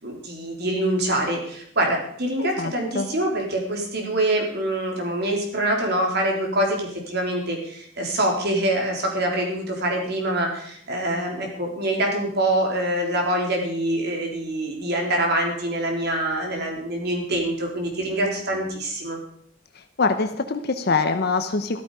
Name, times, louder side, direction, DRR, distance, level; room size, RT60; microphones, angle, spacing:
voice 1, 0.0-19.2, right 1 dB, 55° right, 1 dB, 3.9 m, -25 dB
voice 2, 2.4-3.1 20.0-21.8, left 4 dB, 55° left, 8 dB, 0.9 m, -24 dB
14.0 x 13.5 x 5.0 m, 0.66 s
head